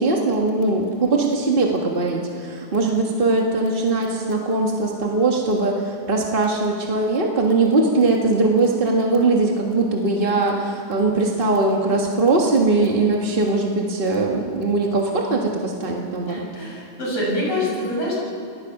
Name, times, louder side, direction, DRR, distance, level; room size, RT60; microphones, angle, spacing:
voice 1, 0.0-16.5, right 3 dB, 25° right, -1 dB, 1.2 m, -20 dB
voice 2, 16.3-18.2, left 1 dB, 60° left, -5 dB, 8.9 m, -25 dB
29.5 x 20.0 x 6.0 m, 2.5 s
omnidirectional pair, 3.3 m